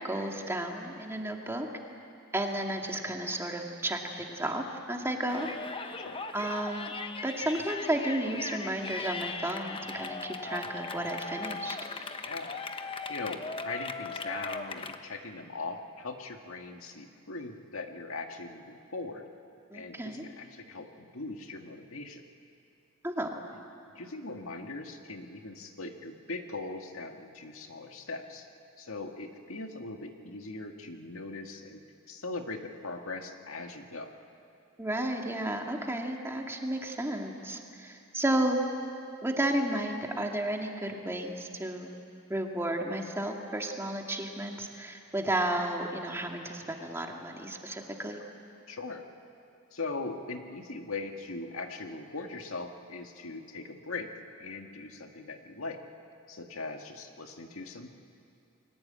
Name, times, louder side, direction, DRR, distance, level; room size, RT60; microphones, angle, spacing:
voice 1, 0.0-1.7 2.3-5.5 6.3-6.9 7.2-11.8 19.7-20.2 23.0-23.3 34.8-38.6 39.2-41.9 42.3-48.2, right 1 dB, 10° right, 1 dB, 2.1 m, -32 dB
Yell, 5.3-15.0, left 4 dB, 25° left, 1.0 m, -38 dB
voice 2, 12.2-12.6 13.1-19.2 19.7-22.2 24.0-28.5 28.8-31.8 32.1-34.1 48.2-48.3 48.7-49.0 49.7-54.1 54.4-55.8 56.3-57.9, left 3 dB, 80° left, 4 dB, 1.9 m, -40 dB
29.5 x 22.0 x 8.8 m, 2.6 s
head